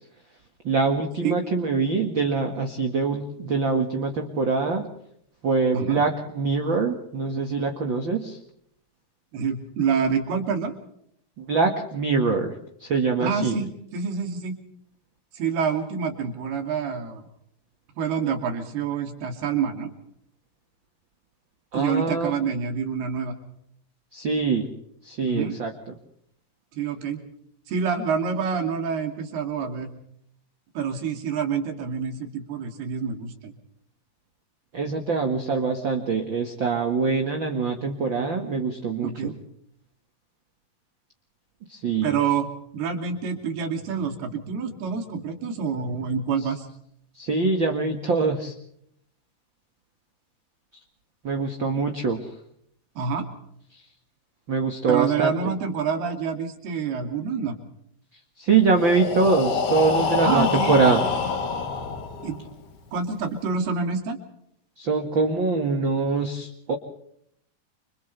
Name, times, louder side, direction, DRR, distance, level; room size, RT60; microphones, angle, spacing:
voice 1, 0.6-4.9 5.4-8.4 11.4-12.5 12.8-13.6 21.7-22.3 24.1-24.7 25.0-25.7 34.7-39.3 41.7-42.1 47.2-48.5 51.2-52.2 54.5-55.3 58.4-61.0 64.8-66.7, right 4 dB, 45° right, 3 dB, 1.8 m, -24 dB
voice 2, 9.3-10.7 13.2-14.6 15.3-17.3 18.0-19.9 21.7-23.3 25.2-25.6 26.7-27.2 27.7-29.9 30.7-33.5 39.0-39.3 42.0-42.5 42.7-46.7 53.0-53.3 54.9-57.6 60.2-60.8 62.2-62.4 62.9-64.2, right 6 dB, 85° right, 4 dB, 4.7 m, -27 dB
Breathing, 58.6-62.5, left 5 dB, 80° left, 4.6 m, -26 dB
29.5 x 26.0 x 3.4 m, 0.71 s
omnidirectional pair, 4.4 m